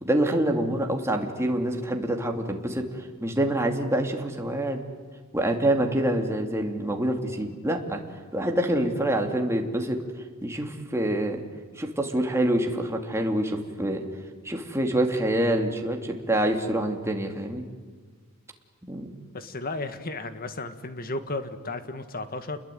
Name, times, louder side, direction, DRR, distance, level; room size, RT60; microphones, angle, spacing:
voice 1, 0.0-4.8 5.3-8.0 8.3-10.0 10.4-11.4 11.7-14.0 14.4-17.6 18.9-19.1, right 1 dB, 15° right, 3 dB, 2.7 m, -26 dB
voice 2, 19.3-22.6, left 2 dB, 45° left, 10 dB, 1.9 m, -34 dB
29.0 x 21.5 x 9.3 m, 1.5 s
head